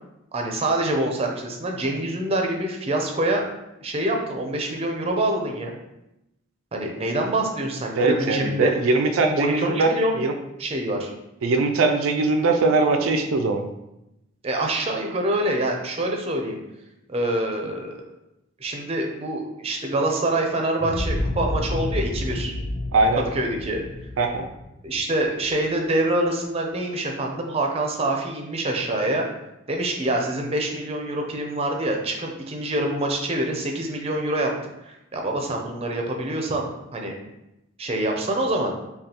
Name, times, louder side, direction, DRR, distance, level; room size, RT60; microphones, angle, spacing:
voice 1, 0.3-3.4 3.8-5.8 6.7-8.7 9.4-10.2 10.6-11.1 14.4-16.6 17.1-17.9 18.6-22.5 23.3-23.8 24.8-29.3 29.7-34.5 34.9-37.1 37.8-38.7, right 1 dB, 30° right, 2 dB, 0.5 m, -25 dB
voice 2, 8.0-10.3 11.4-13.6 22.9-23.2 24.2-24.5, right 3 dB, 85° right, 4 dB, 0.4 m, -21 dB
sound 1, 20.8-25.6, left 1 dB, 30° left, 0.4 m, -29 dB
5.3 x 2.3 x 2.8 m, 0.89 s
head